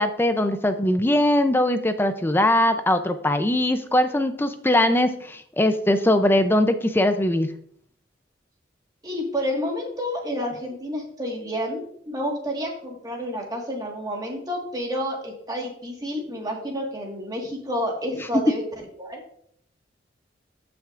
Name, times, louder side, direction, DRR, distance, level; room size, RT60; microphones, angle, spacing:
voice 1, 0.0-7.5, left 1 dB, 10° left, 9 dB, 0.5 m, -21 dB
voice 2, 9.0-18.6 19.0-19.2, equal, 20° right, 1 dB, 1.6 m, -29 dB
14.0 x 5.9 x 2.5 m, 0.64 s
head